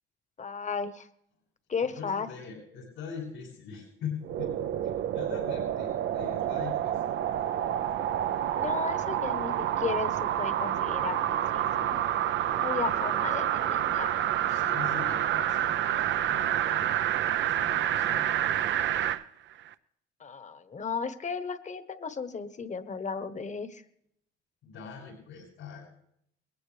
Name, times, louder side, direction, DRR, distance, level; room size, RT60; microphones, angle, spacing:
voice 1, 0.4-1.1 1.7-2.3 8.6-12.0 12.6-14.1 20.2-23.8, left 5 dB, 35° left, 11 dB, 1.2 m, -35 dB
voice 2, 1.8-4.7 5.1-7.0 14.4-17.0 17.4-18.6 24.6-25.9, left 6 dB, 90° left, -7 dB, 8.0 m, -42 dB
sound 1, 4.2-19.2 19.7-19.8, right 11 dB, 70° right, 0.6 m, -28 dB
21.0 x 16.0 x 3.4 m, 0.72 s
cardioid pair, 90°, 20 cm